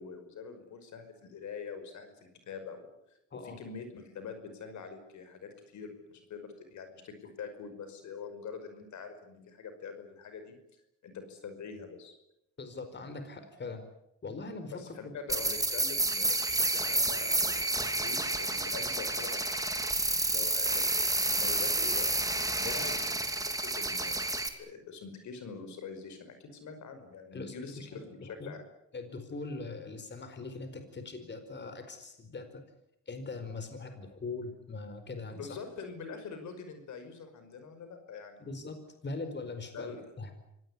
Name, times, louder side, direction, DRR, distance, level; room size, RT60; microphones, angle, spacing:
voice 1, 0.0-2.8 3.4-10.6 11.0-12.1 14.7-19.7 20.2-22.1 22.5-24.3 24.6-28.6 35.3-38.5 39.7-40.0, left 5 dB, 70° left, 8 dB, 5.5 m, -44 dB
voice 2, 12.6-13.8 14.2-15.1 22.6-22.9 27.3-27.5 27.9-28.6 28.9-32.6 33.1-35.4 38.4-40.3, left 3 dB, 35° left, 8 dB, 4.7 m, -41 dB
sound 1, 15.3-24.5, right 2 dB, 10° right, 3.0 m, -30 dB
26.0 x 18.5 x 9.9 m, 0.81 s
cardioid pair, 90°, 30 cm